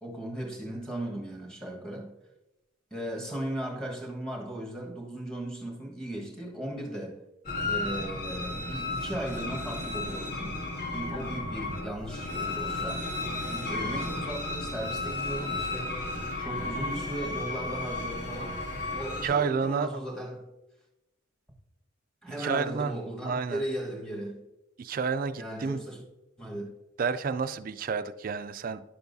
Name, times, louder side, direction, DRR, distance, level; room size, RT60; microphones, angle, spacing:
voice 1, 0.0-2.1 2.9-7.2 7.6-13.1 13.5-18.6 18.9-20.5 22.2-24.5 25.4-26.0 26.4-26.7, right 1 dB, 5° left, 1.3 m, -37 dB
sound 1, 7.5-19.3, left 2 dB, 45° left, 1.9 m, -33 dB
voice 2, 19.2-19.9 22.4-22.9 23.2-23.6 24.8-25.8 27.0-28.8, right 5 dB, 45° right, 0.3 m, -30 dB
10.5 x 7.0 x 2.6 m
head